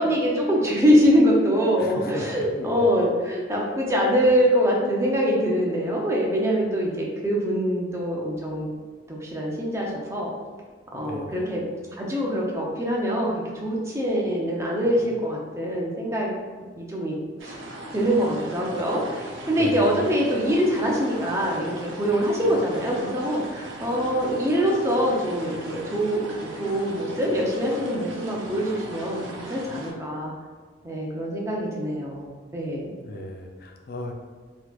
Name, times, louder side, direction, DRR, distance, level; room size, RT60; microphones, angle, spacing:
voice 1, 0.0-8.7 9.1-10.3 10.9-11.6 11.9-16.3 16.8-17.2 17.4-17.5 17.9-29.2 29.5-30.3 30.8-32.3 32.5-33.0, equal, 15° right, -3 dB, 0.5 m, -24 dB
voice 2, 1.8-2.9 10.9-11.5 14.8-15.1 19.4-20.1 33.0-34.1, left 1 dB, 50° left, 2 dB, 0.4 m, -36 dB
sound 1, 17.4-29.9, right 1 dB, 85° right, 0.7 m, -38 dB
4.0 x 2.9 x 2.4 m, 1.5 s
head